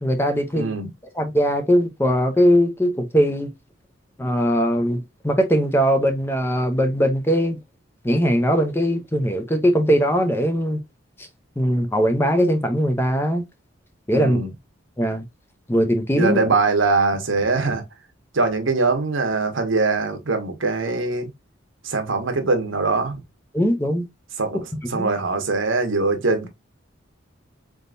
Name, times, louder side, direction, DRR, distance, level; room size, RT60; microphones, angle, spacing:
voice 1, 0.0-0.7 1.2-3.5 4.2-7.6 8.0-10.8 11.2-11.3 11.6-13.4 14.1-14.4 15.0-15.2 15.7-16.4 23.5-24.0 24.9-25.1, equal, 10° left, 0.6 m, -20 dB
voice 2, 0.5-0.9 14.1-14.5 16.1-17.8 18.3-21.3 21.8-23.2 24.4-24.6 24.9-26.5, right 3 dB, 75° right, 1.1 m, -22 dB
4.0 x 3.7 x 2.5 m
head